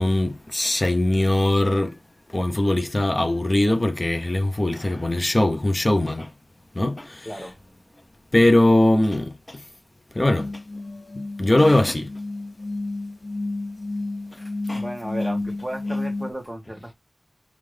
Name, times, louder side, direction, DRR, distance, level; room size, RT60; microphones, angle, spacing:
voice 1, 0.0-1.9 2.3-6.3 6.8-7.1 8.3-9.3 10.2-10.5 11.4-12.1 14.7-14.8, left 1 dB, 35° left, 0.7 m, -20 dB
sound 1, 10.4-16.3, left 2 dB, 65° left, 0.5 m, -31 dB
voice 2, 14.7-16.9, right 1 dB, 5° right, 1.2 m, -34 dB
5.5 x 2.5 x 3.3 m
wide cardioid pair, 80°, 0 cm